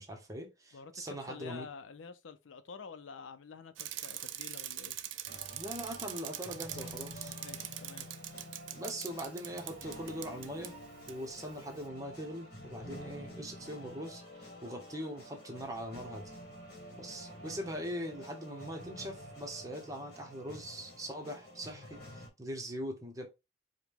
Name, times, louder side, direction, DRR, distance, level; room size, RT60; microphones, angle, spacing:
voice 1, 0.0-1.7 5.5-7.4 8.7-10.8 11.1-16.3 16.9-23.3, equal, 20° right, 0.9 m, -41 dB
voice 2, 0.7-5.0 7.4-8.1, left 5 dB, 85° left, 0.5 m, -48 dB
Bicycle, 3.8-10.7 11.1-11.2, right 13 dB, 75° right, 0.4 m, -43 dB
sound 1, 5.3-22.3, equal, 55° left, 1.2 m, -49 dB
4.8 x 2.2 x 3.5 m
head